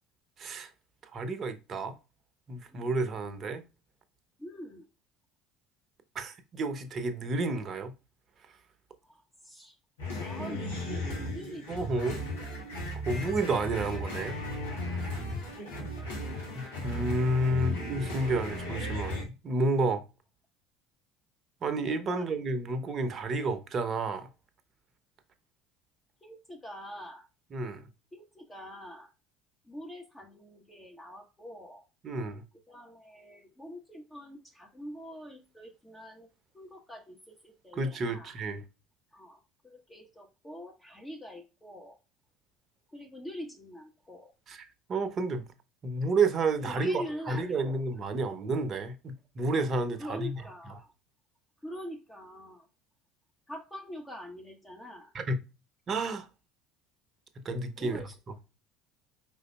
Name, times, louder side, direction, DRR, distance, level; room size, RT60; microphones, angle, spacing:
voice 1, 0.4-0.7 1.0-2.0 2.5-3.6 6.1-7.9 11.7-12.2 13.0-14.4 14.7-15.2 16.5-20.0 21.6-24.3 27.5-27.9 32.0-32.4 37.7-38.6 44.5-45.4 45.8-50.4 50.7-50.8 55.1-55.4 55.9-56.3 57.4-58.3, right 2 dB, 40° right, 0.8 m, -31 dB
voice 2, 4.4-4.8 9.0-9.8 10.2-11.9 12.2-12.6 15.7-16.2 22.1-22.3 26.2-27.3 28.1-29.1 29.7-31.8 32.7-36.3 36.5-38.3 39.1-42.0 42.9-44.3 46.6-48.0 50.0-50.9 51.6-52.7 53.5-55.1 57.8-58.2, equal, 15° left, 1.0 m, -44 dB
sound 1, 10.0-19.3, left 1 dB, 85° left, 1.5 m, -36 dB
4.9 x 3.8 x 2.2 m
hypercardioid pair, 70°, 0 cm